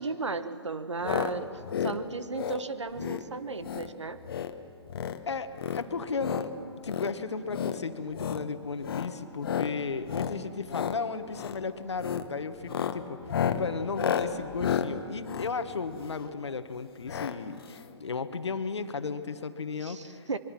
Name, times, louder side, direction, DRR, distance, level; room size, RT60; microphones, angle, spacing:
voice 1, 0.0-4.2 19.8-20.4, right 4 dB, 85° right, 12 dB, 1.2 m, -35 dB
sound 1, 1.0-1.3 1.6-2.0 2.3-2.6 3.0-3.2 3.6-3.9 4.2-4.5 4.8-5.2 5.6-6.5 6.8-7.1 7.5-7.8 8.1-8.4 8.8-9.1 9.4-9.7 10.0-10.4 10.6-11.0 11.3-11.6 12.0-12.3 12.6-16.3 17.1-17.3 17.6-17.7 17.9-18.0, left 8 dB, 55° left, 1.2 m, -32 dB
voice 2, 5.3-6.5 6.8-13.2 13.6-20.3, left 4 dB, 75° left, 10 dB, 1.4 m, -34 dB
26.0 x 22.5 x 5.9 m, 2.5 s
figure-of-eight pair, 130°, 15 cm